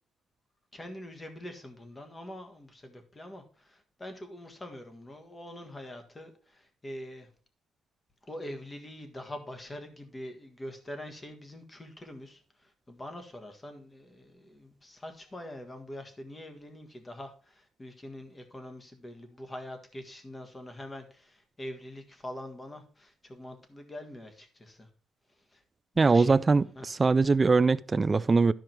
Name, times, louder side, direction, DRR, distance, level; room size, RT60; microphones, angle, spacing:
voice 1, 0.7-7.3 8.2-24.9 25.5-25.6 25.9-26.4 26.7-26.9, left 1 dB, 15° left, 1.5 m, -44 dB
voice 2, 26.0-28.5, right 4 dB, 20° right, 0.4 m, -22 dB
12.5 x 5.0 x 4.5 m
cardioid pair, 145°, 0 cm